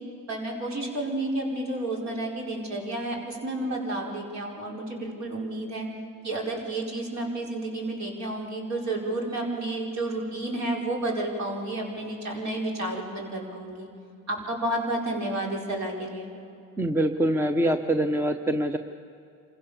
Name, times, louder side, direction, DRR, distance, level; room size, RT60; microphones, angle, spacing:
voice 1, 0.3-5.9 6.2-13.9 14.3-16.3, right 1 dB, 50° right, -1 dB, 5.2 m, -31 dB
voice 2, 16.8-18.8, right 1 dB, 5° right, 7 dB, 0.9 m, -24 dB
27.0 x 15.5 x 7.2 m, 2.6 s
cardioid pair, 95°, 34 cm